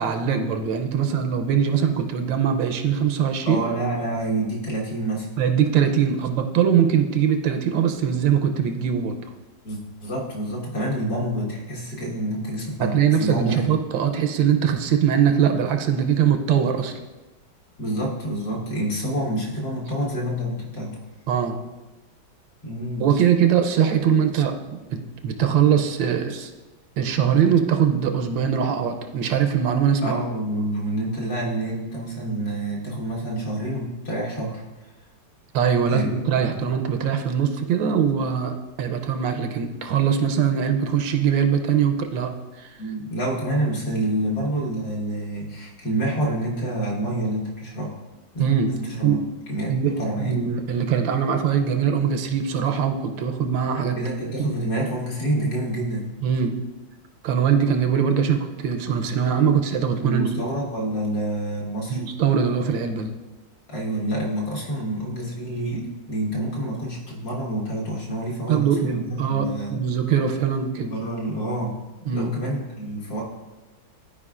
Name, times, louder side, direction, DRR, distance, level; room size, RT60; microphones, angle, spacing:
voice 1, 0.0-3.6 5.4-9.2 12.8-17.0 21.3-21.6 23.0-26.5 27.0-30.2 35.5-42.7 48.4-48.7 49.0-49.2 49.7-54.0 54.4-54.5 56.2-56.6 57.2-60.3 61.9-63.1 68.5-70.9 72.1-72.3, right 8 dB, 80° right, 6 dB, 1.3 m, -22 dB
voice 2, 3.4-5.4 9.6-13.6 17.8-21.0 22.6-23.0 30.0-34.6 35.9-36.1 36.4-36.5 42.8-48.0 48.7-49.2 49.5-50.4 53.9-56.1 60.0-62.0 63.7-69.8 70.9-71.8 72.1-73.2, right 1 dB, 55° left, -5 dB, 1.9 m, -27 dB
12.0 x 4.9 x 2.4 m, 1.1 s
omnidirectional pair, 2.1 m